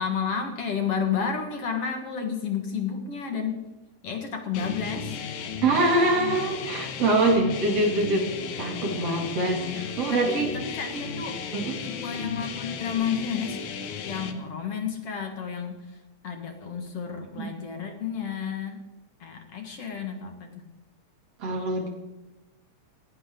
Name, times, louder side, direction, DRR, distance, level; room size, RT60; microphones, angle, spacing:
voice 1, 0.0-3.7 4.0-5.2 10.1-11.4 11.8-13.7 14.1-15.9 16.2-18.8 19.2-20.6, left 6 dB, 55° left, 4 dB, 2.6 m, -31 dB
sound 1, 4.5-14.3, left 6 dB, 80° left, 2.7 m, -35 dB
voice 2, 5.6-8.3 8.6-10.5 11.5-11.8 17.4-17.5 21.4-21.9, right 2 dB, 55° right, 1 dB, 3.8 m, -24 dB
19.0 x 17.0 x 3.8 m, 1.1 s
omnidirectional pair, 3.4 m